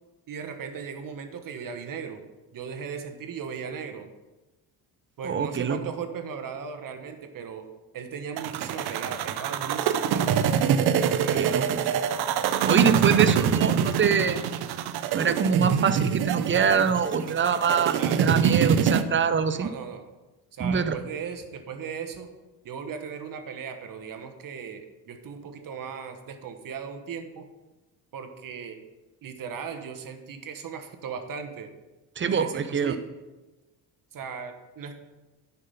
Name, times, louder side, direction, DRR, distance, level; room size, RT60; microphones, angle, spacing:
voice 1, 0.3-2.2 2.5-4.1 5.2-7.7 7.9-10.3 11.0-11.6 13.0-13.3 17.9-18.3 19.5-20.0 20.5-22.3 22.6-27.5 28.1-28.8 29.2-31.7 32.3-33.0 34.1-35.0, right 6 dB, 55° right, 7 dB, 1.2 m, -37 dB
voice 2, 5.2-5.8 11.3-11.8 12.6-14.4 15.1-19.7 20.6-21.0 32.2-32.9, right 6 dB, 30° right, 11 dB, 0.7 m, -24 dB
sound 1, 8.4-19.0, right 8 dB, 75° right, 0.7 m, -25 dB
9.9 x 5.9 x 5.6 m, 1.1 s
cardioid pair, 95°, 39 cm